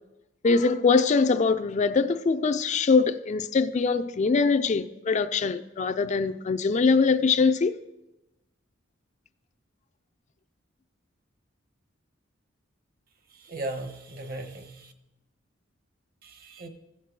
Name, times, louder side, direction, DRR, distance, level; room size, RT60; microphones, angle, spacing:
voice 1, 0.4-7.8, left 4 dB, 40° left, 0.4 m, -23 dB
voice 2, 13.3-14.9 16.2-16.7, right 2 dB, 50° right, 1.1 m, -37 dB
15.5 x 5.9 x 4.7 m
head